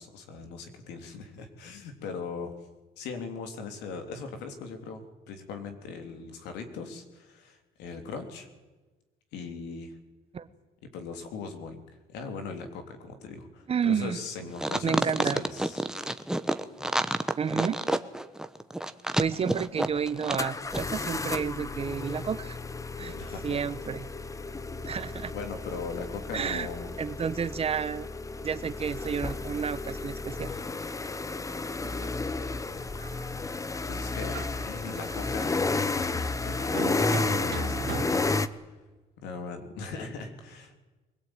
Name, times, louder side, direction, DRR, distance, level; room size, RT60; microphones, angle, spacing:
voice 1, 0.0-2.6 3.0-8.5 9.3-10.0 10.9-11.8 12.1-15.9 23.2-23.6 25.3-26.9 33.9-35.7 36.0-38.6 39.2-40.8, left 4 dB, 90° left, 6 dB, 3.4 m, -40 dB
voice 2, 13.7-14.2 14.8-15.4 17.4-18.0 19.2-22.6 23.0-23.2 23.4-24.1 24.9-25.3 26.3-26.7 27.0-28.1 28.4-30.5, right 7 dB, 35° right, 14 dB, 1.1 m, -31 dB
sound 1, 14.6-20.5 20.7-20.8, right 1 dB, 5° right, 1.1 m, -28 dB
sound 2, 19.2-19.3 20.4-38.5, left 3 dB, 20° left, 0.9 m, -32 dB
sound 3, 31.6-32.2 32.7-33.5 33.9-34.0 34.3-38.0, right 10 dB, 65° right, 2.4 m, -40 dB
23.5 x 18.0 x 9.1 m, 1.2 s
cardioid pair, 110°, 17 cm